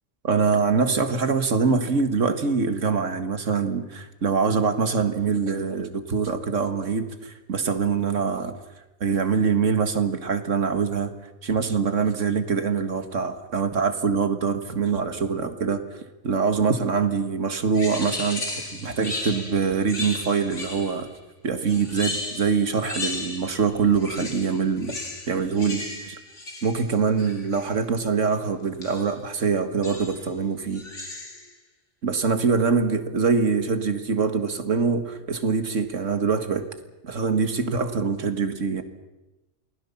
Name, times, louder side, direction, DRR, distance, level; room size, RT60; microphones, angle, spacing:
voice 1, 0.2-8.5 9.0-11.1 11.4-15.8 16.2-21.1 21.4-26.2 26.6-30.8 32.0-36.7 37.0-38.8, right 5 dB, 85° right, 9 dB, 2.1 m, -24 dB
sound 1, 17.7-21.1 21.7-23.7 23.9-27.8 28.8-29.2 29.8-30.3 30.7-31.5, left 2 dB, 75° left, 3.5 m, -35 dB
28.5 x 20.0 x 7.2 m, 1.1 s
omnidirectional pair, 1.3 m